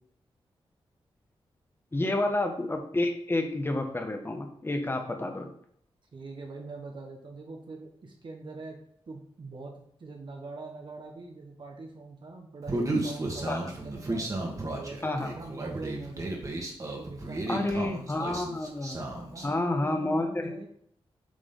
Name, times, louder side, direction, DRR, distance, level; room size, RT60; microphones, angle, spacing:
voice 1, 1.9-5.5 13.5-13.6 15.0-15.3 17.5-20.6, left 2 dB, 25° left, 4 dB, 1.4 m, -30 dB
voice 2, 6.1-8.8 9.1-16.3 17.0-17.9 19.3-20.7, right 3 dB, 55° right, 1 dB, 1.4 m, -43 dB
Human voice, 12.7-19.5, right 2 dB, 35° right, 1.9 m, -33 dB
8.6 x 4.9 x 4.0 m, 0.67 s
cardioid pair, 80°, 10 cm